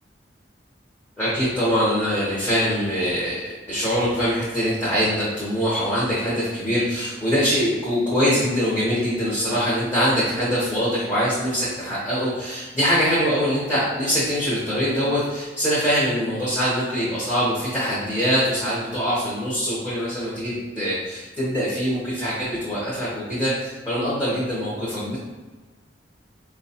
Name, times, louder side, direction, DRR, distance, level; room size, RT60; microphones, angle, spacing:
voice 1, 1.2-3.3 3.7-25.2, equal, 15° left, -11 dB, 0.8 m, -23 dB
4.3 x 2.2 x 2.8 m, 1.3 s
head